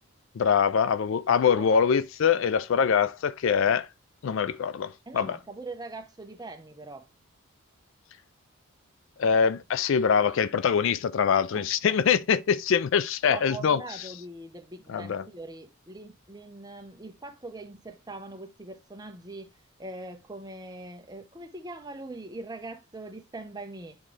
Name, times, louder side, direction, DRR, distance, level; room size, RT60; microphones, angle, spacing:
voice 1, 0.4-3.9 4.2-5.4 9.2-13.8 14.9-15.2, left 7 dB, 60° left, 0.3 m, -24 dB
voice 2, 5.1-7.1 11.5-12.0 13.3-19.5 19.8-24.0, right 2 dB, 15° right, 0.7 m, -42 dB
8.8 x 3.7 x 3.2 m
head